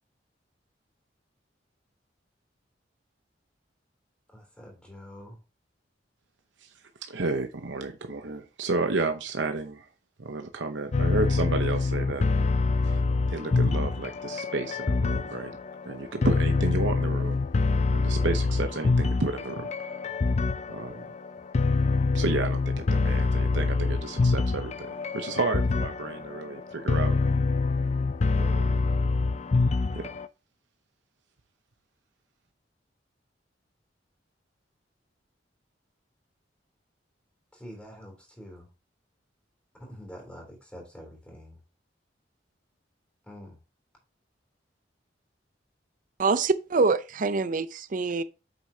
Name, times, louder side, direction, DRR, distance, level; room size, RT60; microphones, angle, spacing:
voice 1, 4.3-5.4 37.5-38.7 39.8-41.6 43.3-43.6, equal, 5° left, 3.3 m, -46 dB
voice 2, 7.0-9.9 10.2-12.3 12.8-13.0 13.3-15.6 15.8-17.4 17.9-19.7 20.7-21.1 22.1-27.2 28.4-28.8 29.9-30.1, right 3 dB, 85° right, 0.8 m, -31 dB
sound 1, 10.9-30.3, left 3 dB, 40° left, 0.4 m, -26 dB
voice 3, 46.2-48.2, right 4 dB, 45° right, 0.5 m, -25 dB
8.1 x 6.5 x 2.8 m
head